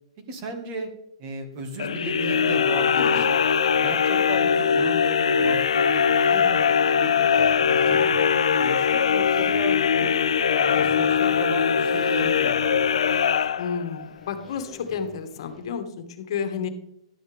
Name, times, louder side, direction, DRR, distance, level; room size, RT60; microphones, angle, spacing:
voice 1, 0.3-0.9 1.2-3.4 3.8-7.1 7.5-10.1 10.5-12.9, right 3 dB, 30° right, 5 dB, 1.7 m, -35 dB
sound 1, 1.8-14.1, left 7 dB, 90° left, 0.5 m, -21 dB
voice 2, 2.9-3.2 13.6-16.7, left 6 dB, 55° left, 7 dB, 1.6 m, -31 dB
Bowed string instrument, 3.7-7.8, right 3 dB, 60° right, 3.6 m, -52 dB
sound 2, 5.4-15.6, left 4 dB, 5° left, 1.8 m, -49 dB
11.5 x 8.0 x 3.5 m, 0.83 s
hypercardioid pair, 160°, 3 cm